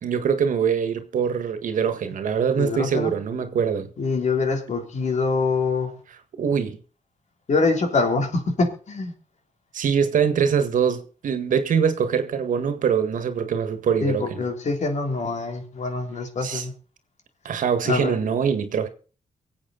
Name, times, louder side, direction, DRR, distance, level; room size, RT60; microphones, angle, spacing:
voice 1, 0.0-3.9 6.4-6.8 9.7-14.5 16.4-16.6 17.4-18.9, right 7 dB, 80° right, 1.8 m, -23 dB
voice 2, 2.5-3.1 4.0-5.9 7.5-9.1 14.0-16.7 17.8-18.1, left 3 dB, 60° left, 3.3 m, -24 dB
24.0 x 8.2 x 4.0 m
cardioid pair, 100°, 13 cm